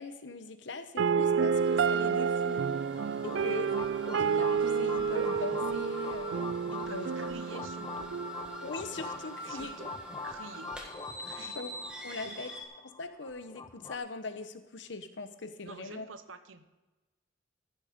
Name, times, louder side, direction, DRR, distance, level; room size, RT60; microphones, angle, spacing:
voice 1, 0.0-2.6 3.2-3.8 4.1-6.4 6.9-7.1 8.6-9.7 11.5-11.7 12.0-12.5 12.8-16.1, left 3 dB, 65° left, 10 dB, 0.9 m, -41 dB
sound 1, 1.0-9.0, right 6 dB, 70° right, 0.3 m, -30 dB
sound 2, 1.5-12.6, equal, 5° right, 1.4 m, -45 dB
sound 3, 2.6-14.0, left 4 dB, 20° left, 0.4 m, -44 dB
voice 2, 3.3-3.6 6.7-8.1 9.5-9.9 10.2-10.7 11.2-11.6 12.2-12.4 15.6-16.7, right 4 dB, 90° right, 11 dB, 0.9 m, -47 dB
14.5 x 7.4 x 5.1 m, 1.1 s
head